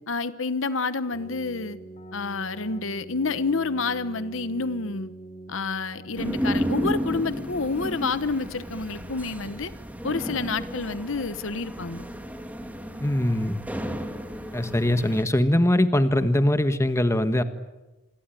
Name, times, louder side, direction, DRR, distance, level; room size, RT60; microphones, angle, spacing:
voice 1, 0.1-1.8 2.1-5.1 5.5-9.7 10.0-12.1, left 4 dB, 70° left, 14 dB, 1.1 m, -29 dB
Keyboard (musical), 1.1-9.2, right 1 dB, 35° left, 3.6 m, -44 dB
sound 1, 6.2-15.2, equal, 10° right, 2.5 m, -32 dB
voice 2, 13.0-13.6 14.5-17.4, left 1 dB, 15° left, 10 dB, 1.4 m, -22 dB
27.0 x 22.0 x 9.2 m, 1.1 s
head